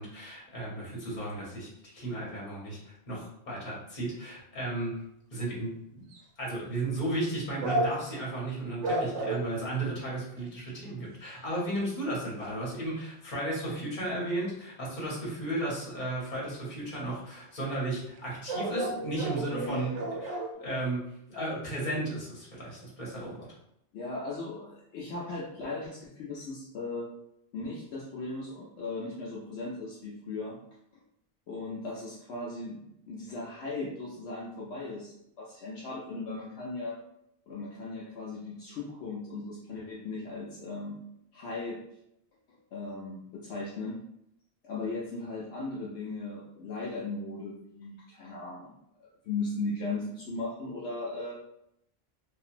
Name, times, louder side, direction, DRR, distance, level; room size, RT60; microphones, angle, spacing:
voice 1, 0.0-5.0 5.3-6.0 6.4-19.9 20.2-23.5, right 1 dB, 45° left, -5 dB, 1.1 m, -34 dB
sound 1, 6.1-6.2 7.6-8.2 8.8-9.5 10.4-10.5 10.9-11.0 11.3-11.8 12.4-12.7 16.3-16.4 16.7-16.8 18.2-18.3 18.5-20.5, right 1 dB, 80° right, 0.9 m, -32 dB
voice 2, 19.5-19.9 23.9-27.1 27.5-30.6 31.5-37.0 37.5-41.0 41.3-41.8 42.5-44.0 44.6-48.7 49.2-51.3, left 3 dB, 75° left, -4 dB, 0.9 m, -37 dB
2.8 x 2.5 x 2.4 m, 0.77 s
omnidirectional pair, 1.2 m